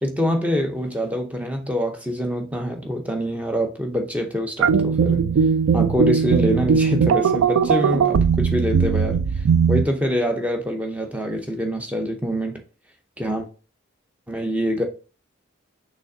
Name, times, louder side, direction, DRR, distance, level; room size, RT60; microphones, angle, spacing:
voice 1, 0.0-5.2 5.7-9.2 9.7-12.6 13.2-13.5 14.3-14.8, equal, 5° right, 0.6 m, -25 dB
sound 1, 4.6-9.8, right 6 dB, 85° right, 0.3 m, -19 dB
6.1 x 3.2 x 2.7 m
head